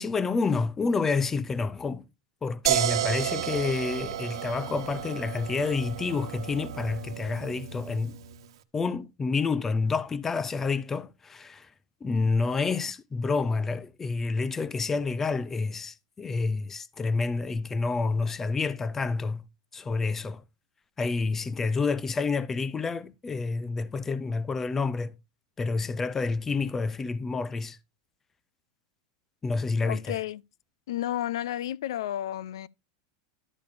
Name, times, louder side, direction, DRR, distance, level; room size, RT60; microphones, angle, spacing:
voice 1, 0.0-2.0 2.4-8.2 8.7-11.7 12.0-19.5 19.7-20.4 21.0-25.1 25.6-27.8 29.4-30.2, left 4 dB, 15° left, 0.5 m, -29 dB
sound 1, 2.7-8.5, right 11 dB, 85° right, 1.1 m, -32 dB
voice 2, 29.9-30.4 30.9-32.7, left 12 dB, 85° left, 0.4 m, -32 dB
12.0 x 6.8 x 2.6 m
supercardioid pair, 160°, 3 cm